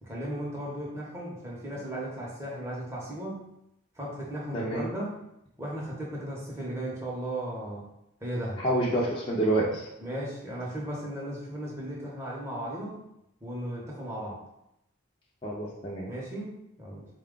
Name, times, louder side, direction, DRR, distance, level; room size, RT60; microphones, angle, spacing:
voice 1, 0.0-3.5 4.0-5.2 5.6-7.8 8.2-8.6 10.0-13.0 13.4-14.4 16.1-17.1, right 1 dB, 15° right, -5 dB, 0.8 m, -36 dB
voice 2, 4.5-4.9 8.6-9.9 15.4-16.1, right 1 dB, 25° left, -5 dB, 0.5 m, -28 dB
4.1 x 2.3 x 3.7 m, 0.82 s
head